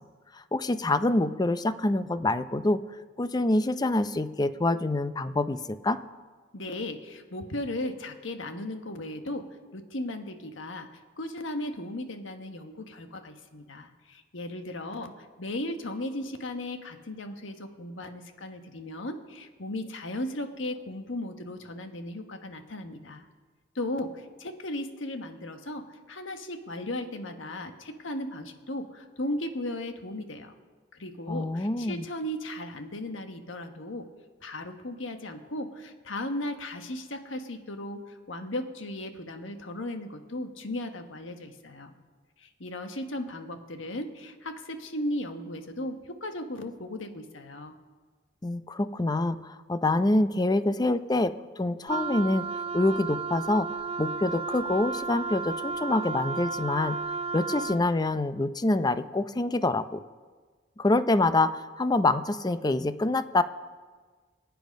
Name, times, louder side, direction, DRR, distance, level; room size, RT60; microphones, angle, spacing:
voice 1, 0.3-2.8 3.2-6.0 31.3-32.0 48.4-52.4 52.7-53.7 54.0-57.0 57.3-60.0 60.8-63.4, left 2 dB, 20° left, 12 dB, 0.5 m, -26 dB
voice 2, 6.5-9.4 9.7-23.3 23.7-30.5 30.9-34.1 34.4-41.9 42.4-47.7, left 1 dB, 85° left, 6 dB, 1.4 m, -36 dB
Wind instrument woodwind instrument, 51.9-57.9, right 4 dB, 30° right, 0.5 m, -33 dB
24.0 x 9.2 x 5.2 m, 1.4 s
head